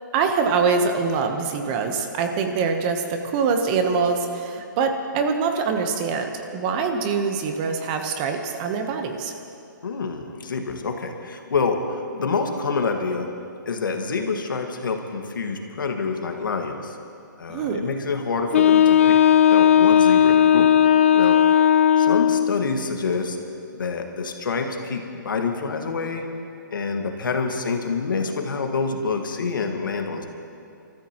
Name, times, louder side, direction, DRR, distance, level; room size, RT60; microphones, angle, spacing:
voice 1, 0.1-9.3 17.5-17.9, right 5 dB, 25° right, 5 dB, 0.9 m, -24 dB
voice 2, 9.8-13.3 13.6-17.0 17.4-19.1 19.5-20.7 21.1-21.4 22.0-23.4 23.7-26.2 26.7-30.2, left 4 dB, 75° left, 4 dB, 1.7 m, -27 dB
Wind instrument woodwind instrument, 18.5-22.6, left 9 dB, 40° left, 0.4 m, -16 dB
28.0 x 14.0 x 3.0 m, 2.6 s
hypercardioid pair, 160°, 11 cm